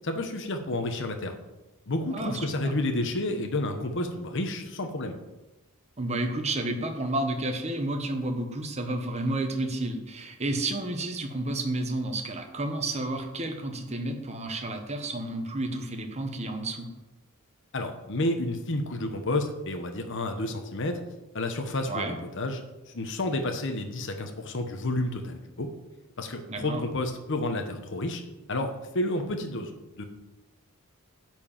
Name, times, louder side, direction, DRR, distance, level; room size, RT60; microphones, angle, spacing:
voice 1, 0.0-1.3 1.9-5.2 17.7-21.0 21.3-25.7 26.2-28.2 28.5-29.7 30.0-30.1, left 1 dB, 55° left, 5 dB, 1.0 m, -30 dB
voice 2, 2.1-2.7 6.0-16.9 21.9-22.2 26.5-26.8, right 2 dB, 30° right, 5 dB, 1.1 m, -31 dB
10.5 x 4.6 x 7.3 m, 1.0 s
head